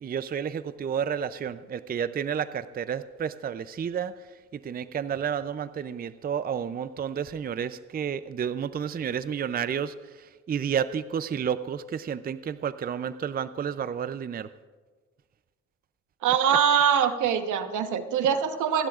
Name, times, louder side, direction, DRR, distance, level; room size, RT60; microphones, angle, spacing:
voice 1, 0.0-4.3 4.5-14.5, right 8 dB, 30° right, 14 dB, 0.5 m, -31 dB
voice 2, 16.2-18.9, right 8 dB, 80° right, 8 dB, 1.2 m, -23 dB
28.5 x 11.5 x 2.5 m, 1.4 s
cardioid pair, 90°, 30 cm